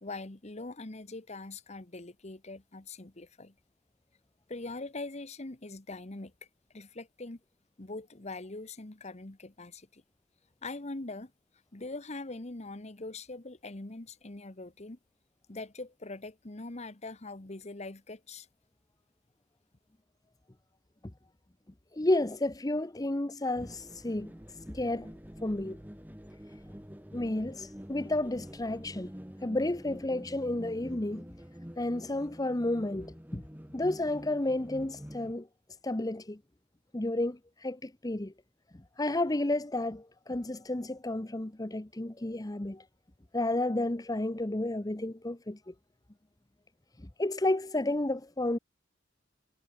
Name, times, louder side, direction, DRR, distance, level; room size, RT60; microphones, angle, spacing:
voice 1, 0.0-3.5 4.5-6.3 6.7-7.4 7.8-10.0 10.6-11.3 11.7-15.0 15.5-18.5, left 2 dB, 35° left, 1.3 m, -42 dB
voice 2, 21.9-24.3 24.7-25.1 25.4-25.8 27.1-29.1 29.4-31.2 31.8-33.4 33.7-35.5 35.8-36.4 36.9-38.3 39.0-42.8 43.3-45.7 47.0-48.6, left 1 dB, 20° left, 0.8 m, -31 dB
sound 1, 23.6-35.3, equal, 10° right, 2.0 m, -47 dB
head